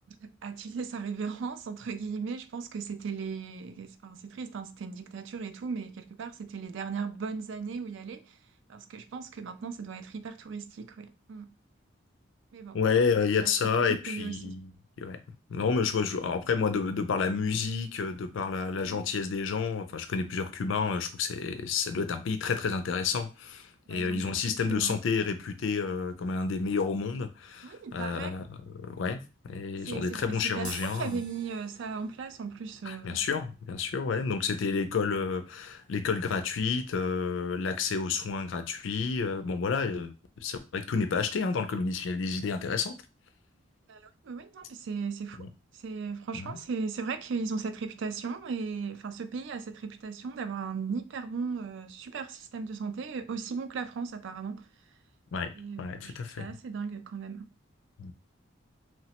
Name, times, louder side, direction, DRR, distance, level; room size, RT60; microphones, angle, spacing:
voice 1, 0.1-8.4 8.7-11.5 12.5-12.8 13.3-13.5 13.8-14.5 18.8-19.0 23.9-25.0 27.6-28.3 29.9-30.2 30.6-33.4 43.9-45.5 45.7-54.7 55.6-57.5, right 5 dB, 65° right, 0.3 m, -37 dB
voice 2, 12.7-14.7 15.0-15.2 15.5-31.2 32.8-42.9 45.4-45.5 46.3-46.6 55.3-55.5 55.8-56.5 58.0-58.1, left 5 dB, 70° left, 0.4 m, -30 dB
sound 1, 30.6-37.2, right 2 dB, 20° right, 0.6 m, -51 dB
3.0 x 2.0 x 2.9 m
head